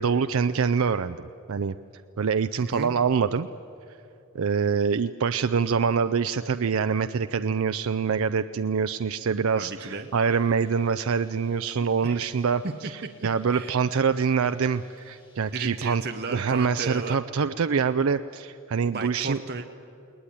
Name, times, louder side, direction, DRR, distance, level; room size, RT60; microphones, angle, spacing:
voice 1, 0.0-1.8 2.2-3.5 4.3-16.0 16.3-19.4, right 6 dB, 70° right, 10 dB, 0.5 m, -25 dB
voice 2, 2.6-2.9 9.6-10.1 12.0-12.3 12.6-12.9 13.2-13.7 15.5-17.2 18.9-19.7, right 3 dB, 45° right, 6 dB, 0.8 m, -34 dB
Bird, 9.9-16.3, left 1 dB, 20° left, 6.3 m, -61 dB
20.5 x 19.5 x 9.9 m, 2.7 s
head